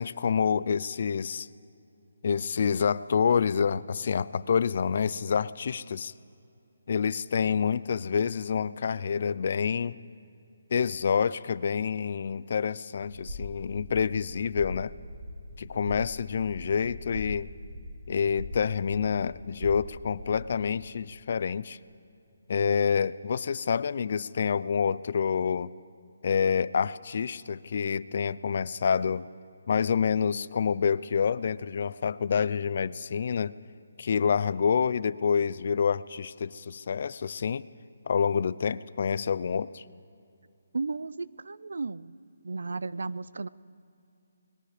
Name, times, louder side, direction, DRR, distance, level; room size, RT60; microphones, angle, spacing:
voice 1, 0.0-1.5 2.2-6.1 6.9-10.0 10.7-14.9 15.6-17.5 18.1-21.8 22.5-25.7 26.2-29.2 29.7-33.5 34.0-37.6 38.1-39.8, left 6 dB, 45° left, 18 dB, 0.4 m, -27 dB
sound 1, 13.0-20.7, left 1 dB, 30° right, 5.1 m, -41 dB
voice 2, 40.7-42.2 42.4-43.5, right 3 dB, 80° right, 19 dB, 0.5 m, -34 dB
29.0 x 20.5 x 5.0 m, 2.6 s
hypercardioid pair, 170°, 0 cm